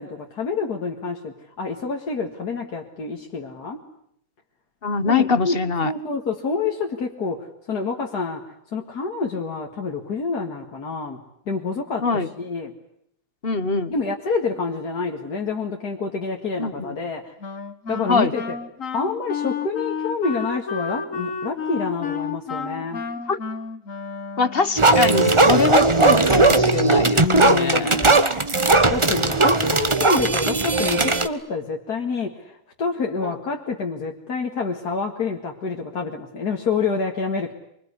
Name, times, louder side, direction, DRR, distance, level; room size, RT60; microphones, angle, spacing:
voice 1, 0.0-3.8 5.1-11.2 11.5-12.7 13.9-17.3 17.9-18.6 18.9-23.1 27.2-28.3 28.9-37.5, left 4 dB, 85° left, 1 dB, 2.5 m, -27 dB
voice 2, 4.8-5.9 12.0-12.3 13.4-13.9 16.6-16.9 18.1-18.3 23.3-23.4 24.4-28.1, left 4 dB, 40° left, 14 dB, 1.4 m, -23 dB
Wind instrument woodwind instrument, 17.4-24.8, left 5 dB, 55° left, 2.0 m, -31 dB
sound 1, 24.8-31.3, right 3 dB, 20° right, 1.2 m, -17 dB
25.0 x 24.0 x 9.7 m, 0.74 s
omnidirectional pair, 1.7 m